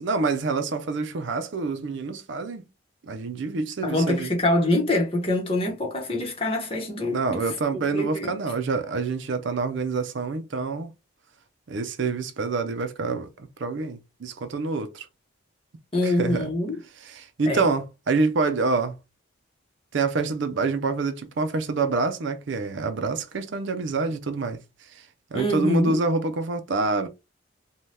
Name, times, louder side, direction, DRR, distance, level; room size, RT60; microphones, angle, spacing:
voice 1, 0.0-2.6 3.0-4.3 7.1-10.9 11.7-15.1 16.0-16.5 17.1-19.0 19.9-24.6 24.9-25.0 25.3-27.1, right 3 dB, 65° right, 0.5 m, -27 dB
voice 2, 3.8-8.3 15.9-16.8 17.5-17.7 25.3-26.0, left 1 dB, 30° left, 0.9 m, -25 dB
2.7 x 2.2 x 3.2 m
head